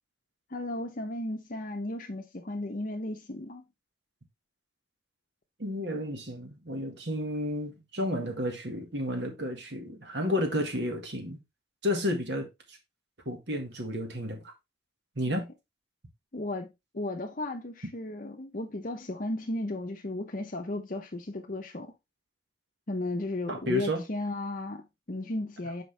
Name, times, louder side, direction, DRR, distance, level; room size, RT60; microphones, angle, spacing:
voice 1, 0.5-3.6 16.3-16.7 16.9-21.9 22.9-25.8, left 2 dB, 50° left, 0.8 m, -35 dB
voice 2, 5.6-11.4 11.8-12.5 13.3-14.4 15.2-15.5 23.5-24.0, left 1 dB, 75° right, 1.8 m, -31 dB
6.0 x 5.1 x 3.3 m
head